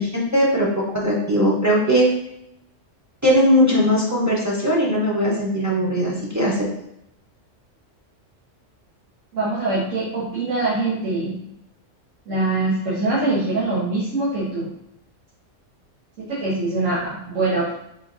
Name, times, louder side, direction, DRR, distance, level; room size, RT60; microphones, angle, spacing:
voice 1, 0.0-2.1 3.2-6.5, equal, 20° right, -5 dB, 0.5 m, -19 dB
voice 2, 9.3-11.3 12.3-14.7 16.2-17.7, right 2 dB, 85° right, -9 dB, 1.5 m, -23 dB
3.7 x 3.5 x 2.5 m, 0.81 s
omnidirectional pair, 1.3 m